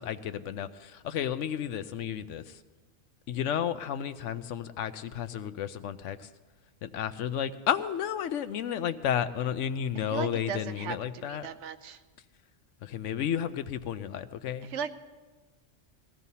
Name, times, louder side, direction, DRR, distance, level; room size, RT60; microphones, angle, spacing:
voice 1, 0.0-2.6 3.3-6.3 6.8-11.5 12.8-14.7, left 9 dB, 85° left, 11 dB, 1.0 m, -32 dB
voice 2, 10.1-12.0 14.6-14.9, right 7 dB, 75° right, 10 dB, 1.0 m, -37 dB
19.5 x 15.0 x 2.8 m, 1.3 s
omnidirectional pair, 1.2 m